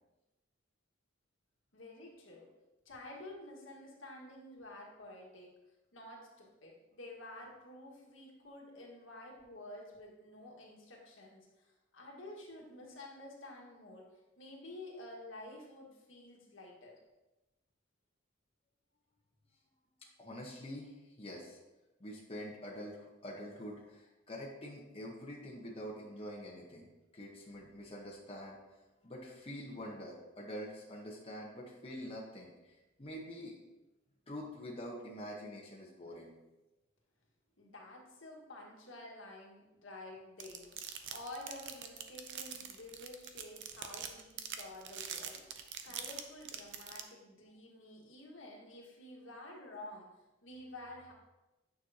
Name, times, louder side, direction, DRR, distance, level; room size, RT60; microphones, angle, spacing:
voice 1, 1.7-2.5 2.8-5.6 5.9-14.1 14.4-16.9 37.6-40.7 41.1-50.1 50.4-51.1, left 1 dB, 75° left, -2 dB, 1.7 m, -50 dB
voice 2, 20.2-21.6 22.0-26.9 27.1-28.6 29.0-33.5 34.3-36.3, equal, 30° left, -3 dB, 1.1 m, -46 dB
sound 1, 40.4-47.0, right 9 dB, 65° right, 0.6 m, -43 dB
9.1 x 6.4 x 2.9 m, 1.0 s
head